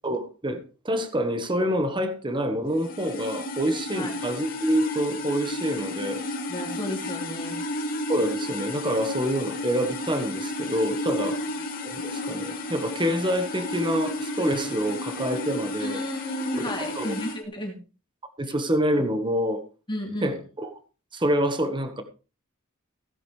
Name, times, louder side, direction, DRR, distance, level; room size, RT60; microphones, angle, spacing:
voice 1, 0.0-0.6 0.8-6.2 8.1-11.4 11.8-16.0 16.5-17.1 18.4-19.6 20.2-20.7 21.1-22.0, equal, 20° right, 8 dB, 1.3 m, -27 dB
sound 1, 2.7-17.4, left 1 dB, 40° left, 2.6 m, -32 dB
voice 2, 6.5-7.6 11.3-11.4 15.8-17.8 19.9-20.3, left 1 dB, 20° left, 1 dB, 2.9 m, -32 dB
16.5 x 9.9 x 3.3 m, 0.32 s
head